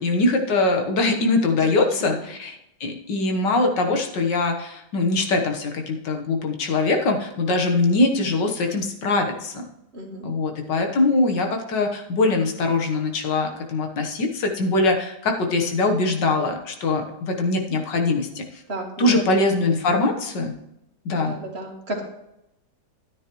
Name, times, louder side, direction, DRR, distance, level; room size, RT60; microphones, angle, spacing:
voice 1, 0.0-9.5 10.2-18.4 19.0-20.5 21.1-21.4, left 2 dB, 80° left, 3 dB, 1.9 m, -22 dB
voice 2, 1.8-2.1 9.9-10.3 18.7-19.2 19.9-20.0 21.2-22.0, right 1 dB, 40° right, 1 dB, 1.8 m, -33 dB
13.0 x 9.5 x 3.1 m, 0.84 s
omnidirectional pair, 1.9 m